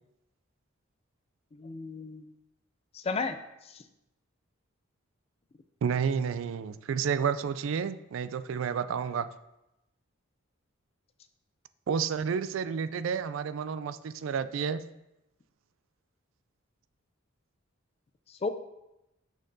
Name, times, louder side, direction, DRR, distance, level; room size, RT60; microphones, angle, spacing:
voice 1, 1.5-2.3 2.9-3.8 18.3-18.5, left 4 dB, 30° left, 10 dB, 0.3 m, -34 dB
voice 2, 5.8-9.3 11.9-14.8, right 6 dB, 70° right, 13 dB, 0.3 m, -30 dB
6.5 x 6.2 x 2.7 m, 0.92 s
head